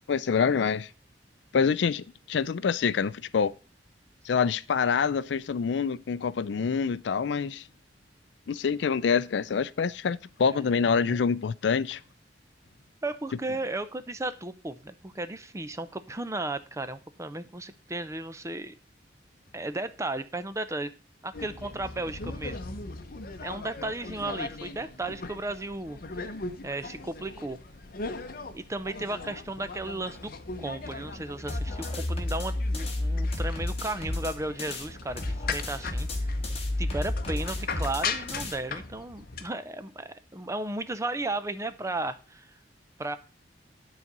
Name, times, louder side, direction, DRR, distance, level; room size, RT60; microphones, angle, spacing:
voice 1, 0.1-0.9 1.5-3.5 4.3-7.6 8.5-12.0, left 6 dB, 70° left, 0.4 m, -26 dB
voice 2, 10.5-11.2 13.0-18.7 19.5-20.9 21.2-22.6 23.4-26.0 26.6-27.6 28.5-30.3 30.6-36.4 36.8-42.5 43.0-43.2, right 2 dB, 15° right, 0.6 m, -34 dB
sound 1, 21.3-39.5, left 4 dB, 55° left, 0.9 m, -39 dB
sound 2, 31.5-34.9 35.2-38.5, left 1 dB, 35° left, 1.7 m, -31 dB
10.0 x 4.1 x 5.9 m
head